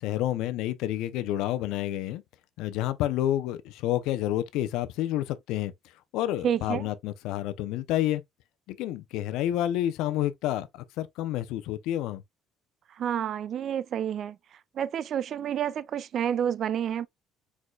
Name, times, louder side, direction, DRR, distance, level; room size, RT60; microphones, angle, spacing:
voice 1, 0.0-2.2 2.6-5.7 6.1-8.2 8.7-12.2, left 13 dB, 80° left, 0.6 m, -29 dB
voice 2, 6.4-6.9 13.0-14.4 14.8-17.1, right 9 dB, 50° right, 0.3 m, -29 dB
4.7 x 4.3 x 2.2 m
cardioid pair, 120°, 0 cm